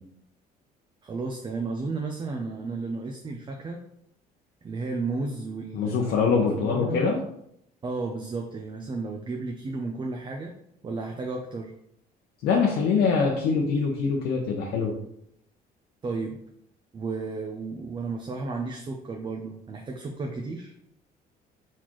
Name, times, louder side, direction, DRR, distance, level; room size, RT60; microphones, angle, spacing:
voice 1, 1.0-3.8 4.6-7.1 7.8-10.5 10.8-11.7 16.0-16.4 16.9-20.7, right 3 dB, 30° right, 2 dB, 0.6 m, -33 dB
voice 2, 5.7-7.2 12.4-14.9, left 5 dB, 80° left, -1 dB, 0.8 m, -24 dB
4.2 x 4.1 x 3.1 m, 0.75 s
cardioid pair, 110°, 17 cm